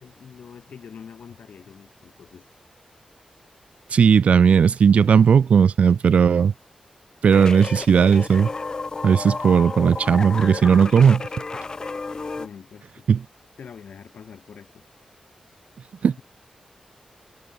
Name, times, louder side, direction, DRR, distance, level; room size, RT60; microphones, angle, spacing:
voice 1, 0.0-2.5 12.4-13.1 13.6-14.8, left 7 dB, 75° left, 7.6 m, -44 dB
voice 2, 3.9-6.5 7.2-8.5 9.0-11.3 13.1-13.2 16.0-16.1, right 6 dB, 65° right, 0.6 m, -16 dB
sound 1, 7.3-12.5, left 3 dB, 30° left, 6.2 m, -32 dB
wide cardioid pair, 155°, 2 cm